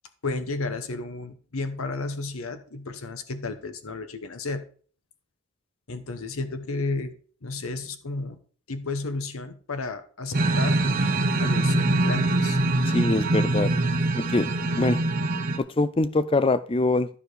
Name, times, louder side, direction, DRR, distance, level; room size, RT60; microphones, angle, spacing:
voice 1, 0.2-4.6 5.9-8.4 8.7-10.8 11.4-12.6, left 3 dB, 75° left, 10 dB, 0.9 m, -32 dB
sound 1, 10.3-15.6, right 2 dB, 40° right, 0.8 m, -23 dB
voice 2, 12.9-13.7 14.2-14.5 14.8-15.0 15.6-17.1, left 2 dB, 25° left, 15 dB, 0.4 m, -23 dB
11.5 x 4.8 x 4.8 m, 0.43 s
head